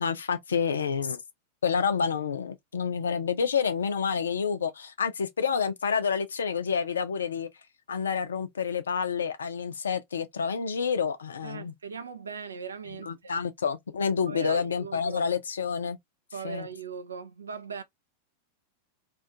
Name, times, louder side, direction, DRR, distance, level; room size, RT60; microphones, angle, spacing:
voice 1, 0.0-1.2 1.6-7.5 7.9-11.7 12.9-16.0 16.4-16.7, left 6 dB, 70° left, 0.4 m, -28 dB
voice 2, 11.4-13.4 14.3-15.2 16.3-17.8, right 6 dB, 70° right, 0.3 m, -39 dB
2.4 x 2.3 x 2.4 m
figure-of-eight pair, 90°, 0 cm